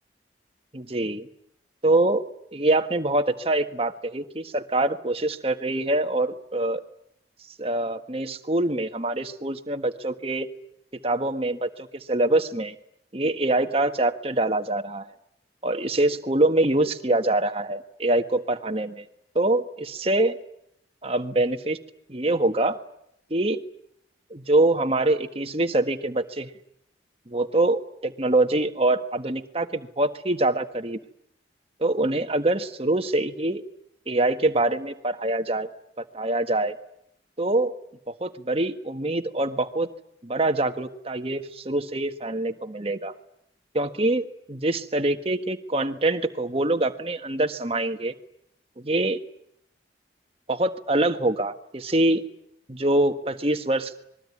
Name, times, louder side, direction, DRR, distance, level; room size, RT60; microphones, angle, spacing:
voice 1, 0.7-1.3 1.8-2.2 2.5-6.8 7.6-10.5 11.0-12.7 13.1-15.1 15.6-19.0 19.3-20.4 21.0-21.8 22.1-22.8 23.3-23.6 24.3-26.5 27.3-31.0 31.8-33.6 34.1-35.7 36.0-36.7 37.4-37.8 38.1-39.9 40.2-43.1 43.7-48.1 48.8-49.2 50.5-52.2 52.7-54.0, right 2 dB, 35° right, 7 dB, 1.5 m, -24 dB
26.0 x 22.0 x 9.8 m, 0.76 s
head